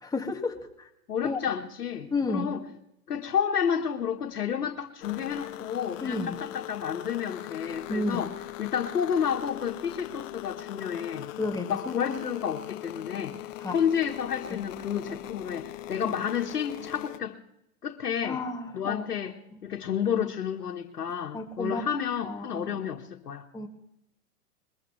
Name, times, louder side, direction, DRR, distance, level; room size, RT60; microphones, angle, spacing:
voice 1, 0.0-0.9 1.2-1.4 2.1-2.5 6.0-6.4 7.9-8.2 11.4-12.2 13.6-13.8 14.5-14.7 16.0-16.1 18.2-19.6 21.3-21.9 22.2-22.8 23.5-23.7, left 3 dB, 10° left, 1.8 m, -32 dB
voice 2, 1.1-2.6 3.1-8.3 8.6-11.3 11.7-13.3 13.7-17.4 17.8-18.4 18.7-19.3 19.6-23.4, left 8 dB, 90° left, 1.4 m, -30 dB
sound 1, 5.0-17.2, left 14 dB, 60° left, 0.7 m, -40 dB
22.0 x 21.0 x 3.2 m
hypercardioid pair, 120°, 46 cm